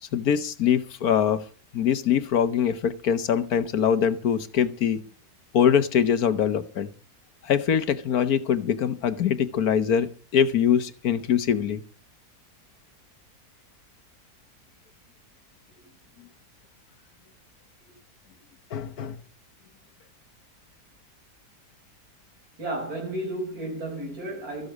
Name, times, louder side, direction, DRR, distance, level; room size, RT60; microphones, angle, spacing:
voice 1, 0.1-1.4 1.7-5.0 5.5-6.9 7.4-11.8 18.7-19.2, left 8 dB, 75° left, 1.5 m, -23 dB
voice 2, 22.6-24.7, right 1 dB, 70° right, 5.6 m, -32 dB
14.0 x 8.1 x 7.3 m
omnidirectional pair, 1.6 m